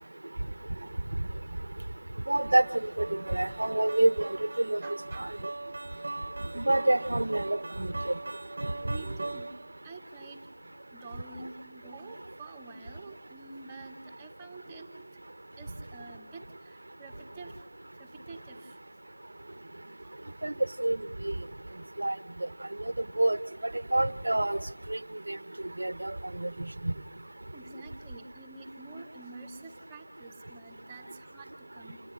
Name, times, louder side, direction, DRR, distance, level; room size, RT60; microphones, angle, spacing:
voice 1, 2.3-4.1 4.6-4.8 5.2-5.3 6.5-7.9 20.4-20.5 20.8-21.0 21.2-21.3 22.0-22.1 23.2-23.4 23.6-24.6 24.9-25.0 25.3-25.4 25.8-26.5 26.8-26.9, right 1 dB, 75° right, 16 dB, 1.2 m, -27 dB
sound 1, 2.4-9.8, right 2 dB, 55° right, 1.3 m, -40 dB
voice 2, 4.8-5.2 6.0-6.3 8.8-15.3 15.6-17.7 18.0-18.9 19.3-20.5 27.5-32.0, right 3 dB, 10° right, 2 dB, 2.0 m, -48 dB
28.5 x 19.5 x 9.2 m, 0.73 s
figure-of-eight pair, 170°, 0 cm